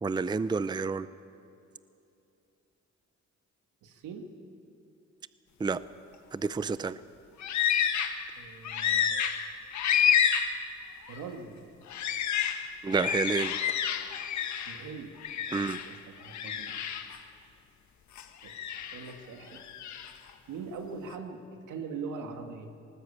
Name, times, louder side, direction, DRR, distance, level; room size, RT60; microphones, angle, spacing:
voice 1, 0.0-1.1 5.6-5.8 6.3-7.0 12.8-13.6 15.5-15.8, right 4 dB, 15° right, 15 dB, 0.5 m, -29 dB
voice 2, 3.8-4.3 8.4-9.3 11.1-11.7 14.7-15.2 15.5-16.8 18.4-19.6 20.5-22.7, right 5 dB, 85° right, 5 dB, 2.1 m, -42 dB
sound 1, 7.4-8.3 8.6-10.6 11.1-11.2 11.9-14.8 15.2-15.9 16.2-17.2 18.2-19.1 19.6-20.1, left 8 dB, 70° left, 1.6 m, -29 dB
19.5 x 18.5 x 8.7 m, 2.7 s
cardioid pair, 90°, 30 cm